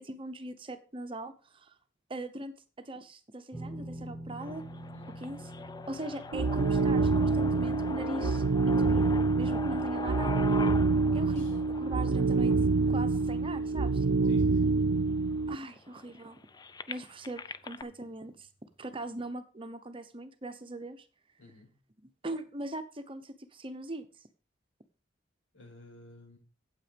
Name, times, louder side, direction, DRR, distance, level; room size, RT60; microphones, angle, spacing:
voice 1, 0.0-1.7 2.1-4.6 5.2-5.5 5.9-9.1 9.4-10.5 11.1-12.5 12.9-14.3 15.5-16.4 16.9-18.5 18.8-21.1 22.2-24.1, right 1 dB, 30° right, 9 dB, 0.8 m, -40 dB
sound 1, 3.5-15.8 16.0-16.3 17.9-18.0, right 1 dB, 10° right, 1.5 m, -49 dB
sound 2, 4.4-14.3 15.0-15.1 15.4-17.8, left 3 dB, 20° left, 0.4 m, -42 dB
voice 2, 4.9-5.2 11.3-11.6 14.2-14.9 21.4-21.7 25.5-26.4, left 2 dB, 75° left, 0 dB, 5.3 m, -52 dB
sound 3, 6.3-15.6, right 3 dB, 75° right, 0.5 m, -26 dB
8.9 x 8.2 x 5.1 m, 0.35 s
head